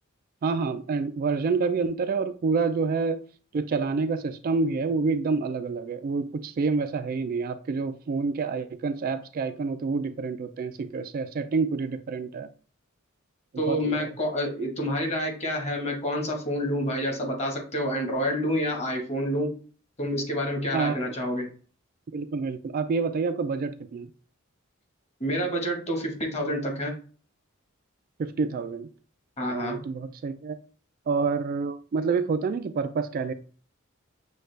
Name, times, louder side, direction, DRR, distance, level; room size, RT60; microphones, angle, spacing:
voice 1, 0.4-3.2 3.5-12.5 13.5-14.1 20.7-21.0 22.1-24.1 28.2-28.9 29.5-30.6 31.1-33.3, right 4 dB, 45° right, 10 dB, 0.3 m, -28 dB
voice 2, 13.6-19.6 20.0-21.5 25.2-26.9 29.4-29.8, equal, 30° left, 2 dB, 1.2 m, -28 dB
6.4 x 2.3 x 3.2 m, 0.39 s
head